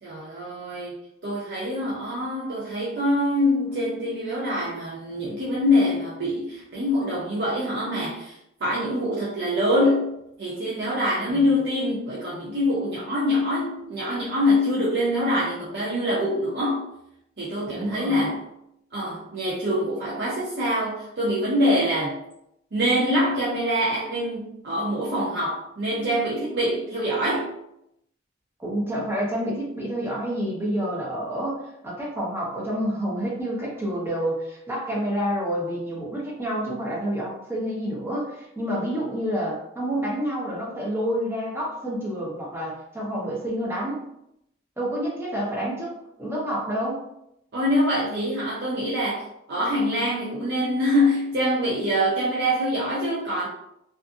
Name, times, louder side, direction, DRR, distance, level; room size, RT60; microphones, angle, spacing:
voice 1, 0.0-16.9 17.4-18.4 18.9-22.2 22.7-27.5 47.5-53.5, left 1 dB, 55° right, -7 dB, 0.6 m, -25 dB
voice 2, 17.7-18.3 28.6-44.0 44.8-47.0, equal, 10° right, -5 dB, 0.8 m, -28 dB
2.5 x 2.5 x 2.4 m, 0.79 s
head